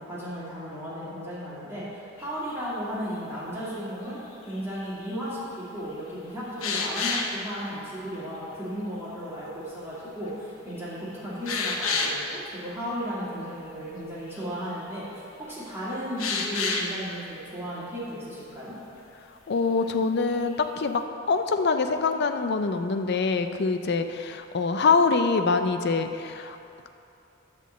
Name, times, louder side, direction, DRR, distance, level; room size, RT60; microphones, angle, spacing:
voice 1, 0.0-4.2 4.5-18.8, equal, 10° right, -10 dB, 2.1 m, -35 dB
sound 1, 2.2-2.3 4.5-5.2 6.6-7.4 10.3-10.4 10.8-10.9 11.5-12.4 14.0-14.1 14.3-14.7 16.2-16.9 20.3-20.6, left 4 dB, 80° left, 0.9 m, -29 dB
voice 2, 19.5-21.0 21.3-26.6, left 4 dB, 55° left, 8 dB, 0.5 m, -24 dB
10.5 x 3.7 x 7.2 m, 2.7 s
head